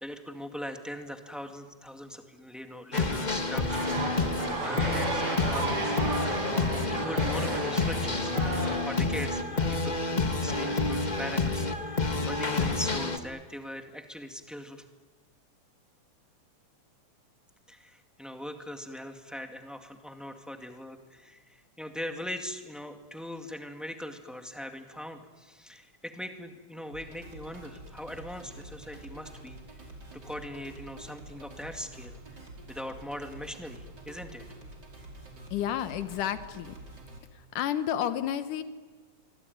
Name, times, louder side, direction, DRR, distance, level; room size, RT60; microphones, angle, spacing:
voice 1, 0.0-4.3 4.6-5.9 6.9-14.8 17.7-32.2 32.7-34.4, left 1 dB, ahead, 5 dB, 1.3 m, -41 dB
sound 1, 2.9-13.2, left 3 dB, 30° left, 0.8 m, -29 dB
sound 2, 3.7-8.8, right 2 dB, 50° right, 6.1 m, -33 dB
sound 3, 26.9-37.2, right 2 dB, 30° right, 5.3 m, -47 dB
voice 2, 35.5-36.8 37.3-38.6, left 10 dB, 90° left, 11 dB, 2.7 m, -31 dB
25.5 x 24.5 x 9.4 m, 1.4 s
omnidirectional pair, 3.5 m